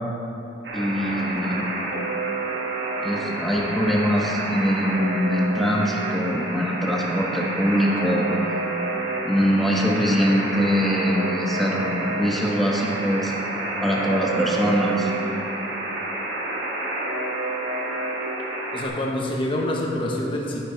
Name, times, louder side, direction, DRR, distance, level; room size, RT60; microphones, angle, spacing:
Alarm, 0.6-18.9, right 2 dB, 65° right, 1.8 m, -29 dB
voice 1, 0.7-1.7 3.0-8.3 9.2-13.3 13.8-15.1, equal, ahead, -2 dB, 1.2 m, -23 dB
voice 2, 18.7-20.6, left 1 dB, 30° left, -2 dB, 1.2 m, -26 dB
12.0 x 9.3 x 4.0 m, 2.8 s
head